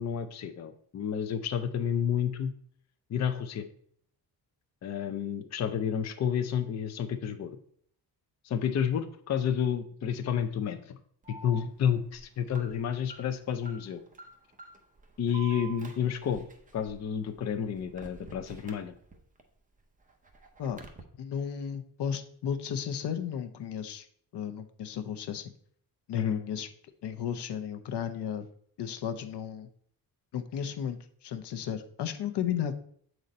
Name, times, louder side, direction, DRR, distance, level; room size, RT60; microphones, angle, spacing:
voice 1, 0.0-2.5 3.1-3.7 4.8-7.5 8.4-11.0 11.3-14.0 15.2-16.4 16.7-18.9 26.1-26.4, left 8 dB, 40° left, 8 dB, 0.5 m, -30 dB
Alarm, 11.2-19.4 19.8-21.0, right 4 dB, 20° right, 0.7 m, -49 dB
voice 2, 21.2-24.0 24.3-25.5 26.1-26.7 27.0-28.5 28.8-29.7 30.3-32.7, left 8 dB, 75° left, 9 dB, 0.7 m, -34 dB
7.8 x 4.0 x 4.2 m, 0.62 s
wide cardioid pair, 155°, 41 cm